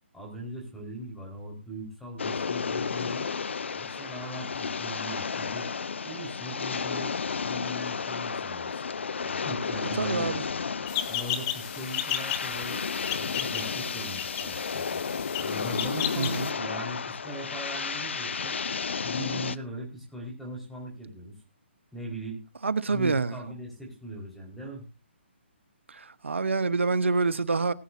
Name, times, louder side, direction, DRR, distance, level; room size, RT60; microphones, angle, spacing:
voice 1, 0.1-3.3 3.7-5.7 6.0-7.1 7.4-8.8 9.2-10.3 11.1-12.8 13.2-15.0 15.4-18.6 19.0-21.4 21.9-22.4 22.9-24.9, right 1 dB, ahead, 4.4 m, -39 dB
sound 1, 2.2-19.6, left 5 dB, 75° left, 0.6 m, -32 dB
voice 2, 10.0-10.4 16.2-16.5 22.6-23.4 25.9-27.7, right 4 dB, 85° right, 1.0 m, -26 dB
sound 2, 10.9-16.5, left 12 dB, 25° left, 1.3 m, -34 dB
19.5 x 9.5 x 2.6 m
hypercardioid pair, 150°, 6 cm